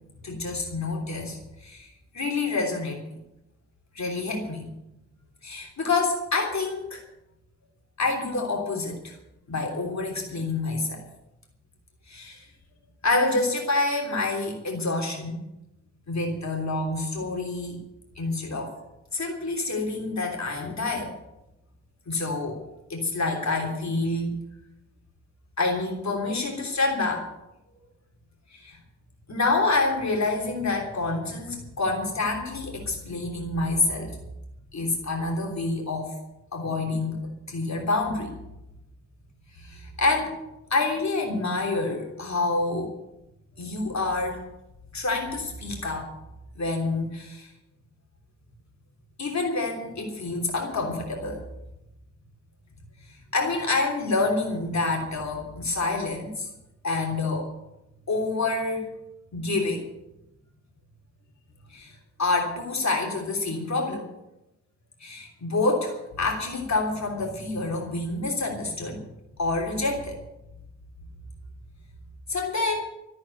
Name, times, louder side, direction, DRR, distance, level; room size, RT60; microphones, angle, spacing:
voice 1, 0.2-1.9 2.1-3.0 3.9-4.6 5.4-7.0 8.0-9.2 9.5-11.0 12.1-12.4 13.0-15.4 16.1-17.8 18.2-18.7 19.1-21.1 22.1-22.6 22.9-24.3 25.6-27.2 28.5-28.8 29.3-34.2 34.7-36.1 36.5-38.3 39.6-40.3 40.7-42.9 43.6-44.4 44.9-46.1 46.5-47.5 49.2-51.4 53.1-56.5 56.8-57.5 58.1-58.9 59.3-59.8 61.7-61.9 62.2-64.0 65.0-69.0 69.4-70.2 72.3-72.8, left 3 dB, 70° left, 0 dB, 3.3 m, -27 dB
14.0 x 8.8 x 9.6 m, 0.92 s
wide cardioid pair, 95°, 29 cm